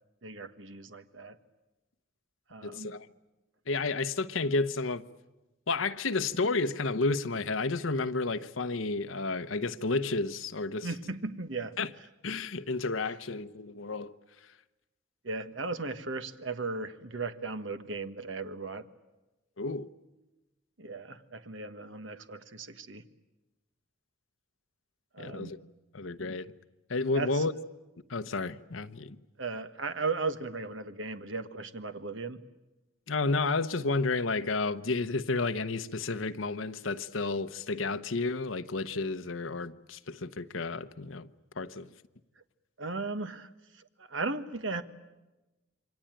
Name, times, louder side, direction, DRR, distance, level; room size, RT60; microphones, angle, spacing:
voice 1, 0.2-1.4 2.5-3.0 10.8-11.8 15.2-18.8 20.8-23.0 25.1-25.5 27.1-27.4 29.4-32.4 42.8-44.8, right 3 dB, 70° right, 1.4 m, -36 dB
voice 2, 2.6-3.1 3.7-5.0 5.7-10.9 11.8-11.9 12.2-14.1 19.6-19.9 25.2-25.6 25.9-26.5 26.9-27.5 28.1-29.2 33.1-41.3 41.6-41.9, left 3 dB, 80° left, 1.0 m, -31 dB
27.5 x 24.0 x 9.1 m
head